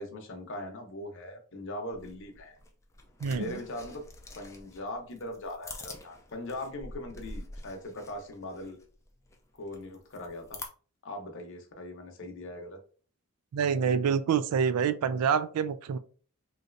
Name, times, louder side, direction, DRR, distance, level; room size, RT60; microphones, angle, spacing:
voice 1, 0.0-2.6 3.3-4.0 4.3-8.8 9.6-10.6 11.0-12.8, left 1 dB, 60° left, 0.7 m, -40 dB
sound 1, 1.9-10.7, left 2 dB, 15° left, 0.4 m, -47 dB
voice 2, 3.2-3.6 13.5-16.0, right 7 dB, 90° right, 0.3 m, -27 dB
3.1 x 2.6 x 2.5 m
head